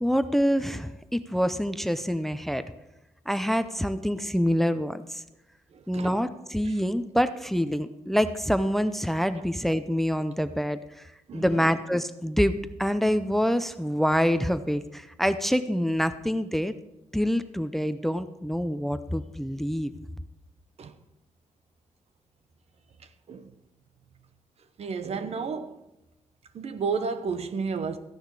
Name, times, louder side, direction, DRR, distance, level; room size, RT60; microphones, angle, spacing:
voice 1, 0.0-2.6 3.3-5.2 5.9-16.7 17.1-19.9, equal, ahead, 0.6 m, -26 dB
voice 2, 5.7-6.2 6.6-6.8 11.3-11.7 20.8-21.0 23.3-23.5 24.8-25.8 26.5-28.0, right 5 dB, 65° right, 1.0 m, -32 dB
14.0 x 10.5 x 4.8 m
cardioid pair, 100°, 12 cm